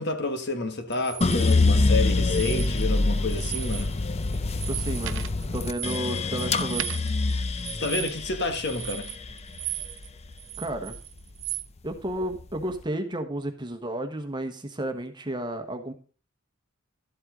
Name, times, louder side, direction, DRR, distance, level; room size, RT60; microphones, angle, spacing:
voice 1, 0.0-3.9 7.8-9.1, left 3 dB, 55° left, 1.6 m, -29 dB
sound 1, 0.9-1.5 2.2-3.0 3.3-3.9 4.2-10.1 10.4-11.7, right 15 dB, 60° right, 0.6 m, -37 dB
sound 2, 1.2-11.4 11.9-12.6, left 3 dB, 30° left, 0.6 m, -26 dB
voice 2, 4.7-5.3 5.5-7.0 10.6-11.0 11.8-15.9, right 1 dB, 20° right, 1.2 m, -32 dB
12.5 x 7.8 x 3.8 m
head